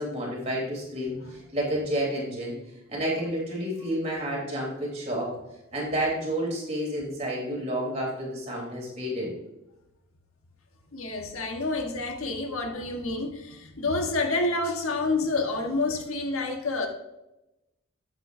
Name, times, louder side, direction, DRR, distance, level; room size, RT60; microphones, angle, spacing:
voice 1, 0.0-2.5 2.9-5.3 5.7-9.3, right 1 dB, 30° right, -4 dB, 3.7 m, -30 dB
voice 2, 10.9-16.9, left 2 dB, 80° left, 3 dB, 1.4 m, -28 dB
12.0 x 8.4 x 2.7 m, 0.94 s
head